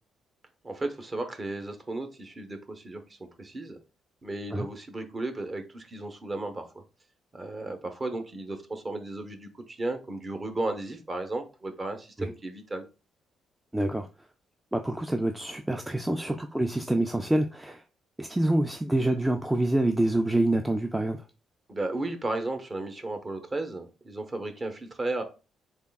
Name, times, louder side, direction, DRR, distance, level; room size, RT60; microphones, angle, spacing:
voice 1, 0.6-3.8 4.2-6.6 7.3-12.9 21.7-25.2, right 2 dB, 30° right, 0.7 m, -34 dB
voice 2, 13.7-14.1 14.7-17.8 18.2-21.2, right 1 dB, 10° right, 0.3 m, -26 dB
3.5 x 3.4 x 2.2 m
cardioid pair, 90°, 0 cm